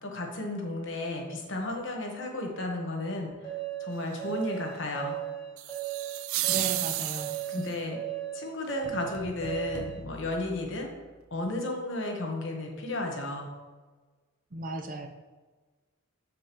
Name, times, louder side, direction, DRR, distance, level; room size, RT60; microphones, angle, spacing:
voice 1, 0.0-3.4 3.8-5.2 7.5-8.0 8.3-10.9 11.3-13.6, left 2 dB, 60° left, 2 dB, 1.2 m, -33 dB
sound 1, 3.4-10.0, right 13 dB, 20° left, 2.3 m, -36 dB
sound 2, 5.6-7.7, right 14 dB, 85° right, 0.4 m, -32 dB
voice 2, 6.5-7.7 14.5-15.1, right 2 dB, 40° right, 4 dB, 0.6 m, -36 dB
sound 3, 8.8-11.4, left 1 dB, 35° left, 0.8 m, -46 dB
7.3 x 6.9 x 3.0 m, 1.3 s
head